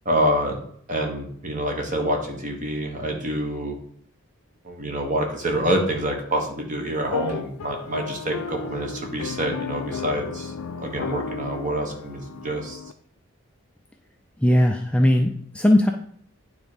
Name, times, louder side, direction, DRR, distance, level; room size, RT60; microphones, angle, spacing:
voice 1, 0.0-0.6 0.9-3.7 4.6-10.5 10.8-12.8, right 1 dB, 35° right, 3 dB, 1.3 m, -26 dB
sound 1, 7.0-12.9, left 5 dB, 75° left, 0.4 m, -34 dB
voice 2, 14.4-15.9, left 1 dB, 5° left, 3 dB, 0.3 m, -18 dB
9.2 x 3.5 x 5.1 m, 0.65 s
head